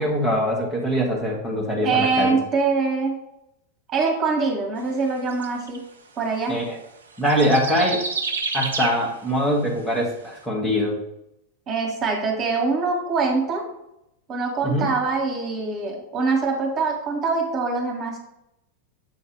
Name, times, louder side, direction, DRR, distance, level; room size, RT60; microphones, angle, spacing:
voice 1, 0.0-2.4 6.5-6.8 7.2-8.0 8.5-11.0 14.6-14.9, equal, 5° left, -3 dB, 1.4 m, -23 dB
voice 2, 1.8-3.2 3.9-5.8 6.2-6.6 11.7-13.6 14.3-18.2, right 4 dB, 30° right, 0 dB, 1.8 m, -24 dB
sound 1, 5.3-5.8 7.2-9.1 10.1-10.2, right 4 dB, 70° right, 0.6 m, -28 dB
7.6 x 3.2 x 4.6 m, 0.80 s
figure-of-eight pair, 90°, 0 cm